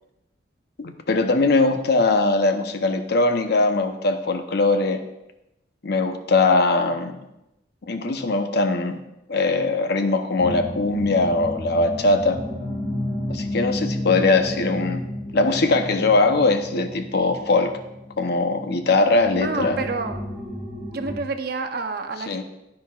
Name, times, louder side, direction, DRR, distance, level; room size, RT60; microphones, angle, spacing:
voice 1, 0.8-5.0 5.8-7.2 7.9-9.0 9.3-12.4 13.3-15.0 15.3-17.7 18.2-19.8 22.2-22.4, left 3 dB, 60° left, 7 dB, 0.8 m, -21 dB
sound 1, 10.4-21.2, left 1 dB, 10° right, 2.2 m, -32 dB
voice 2, 19.4-20.2 20.9-22.4, right 4 dB, 55° right, 7 dB, 0.7 m, -28 dB
10.5 x 9.6 x 2.4 m, 0.89 s
head